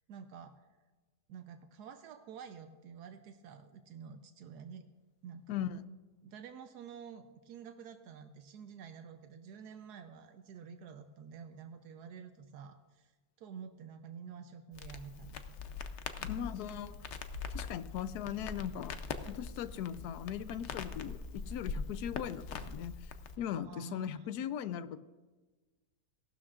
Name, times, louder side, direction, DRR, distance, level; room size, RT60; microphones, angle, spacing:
voice 1, 0.1-0.5 1.3-4.8 5.2-5.6 6.2-13.1 13.4-15.7 23.5-24.3, right 7 dB, 85° right, 8 dB, 1.2 m, -49 dB
voice 2, 5.5-5.8 16.2-17.1 17.5-19.0 19.3-25.0, left 9 dB, 85° left, 14 dB, 1.1 m, -39 dB
Crackle, 14.7-23.4, left 4 dB, 60° left, 0.8 m, -42 dB
17.5 x 12.0 x 2.5 m, 1.3 s
omnidirectional pair, 1.7 m